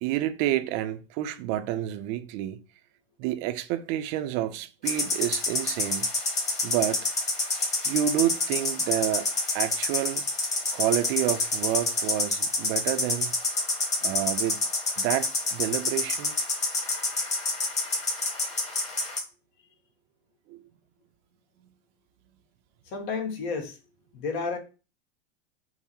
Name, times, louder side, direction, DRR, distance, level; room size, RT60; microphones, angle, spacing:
voice 1, 0.0-2.6 3.2-6.1 6.6-7.1 7.8-10.3 10.7-13.3 14.0-14.6 15.0-16.4 20.5-20.6, right 13 dB, 50° right, 0.5 m, -29 dB
sound 1, 4.9-19.2, left 2 dB, 20° left, 1.5 m, -28 dB
voice 2, 22.9-23.8 24.1-24.6, left 4 dB, 60° left, 1.4 m, -31 dB
5.4 x 2.1 x 4.5 m
supercardioid pair, 120°, 31 cm